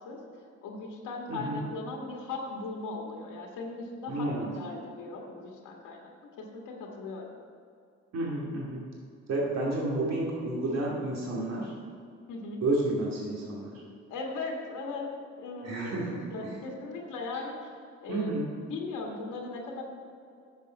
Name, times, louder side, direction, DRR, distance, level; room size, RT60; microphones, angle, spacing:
voice 1, 0.6-6.1 6.4-7.3 12.3-12.6 14.1-15.1 15.4-17.6 18.0-19.8, left 3 dB, 90° left, 0 dB, 1.6 m, -38 dB
voice 2, 1.3-1.6 4.1-4.6 8.1-8.8 9.3-11.7 12.6-13.8 15.6-16.6 18.1-18.5, right 2 dB, 60° right, -3 dB, 2.4 m, -31 dB
10.0 x 7.1 x 5.2 m, 2.4 s
cardioid pair, 90°, 30 cm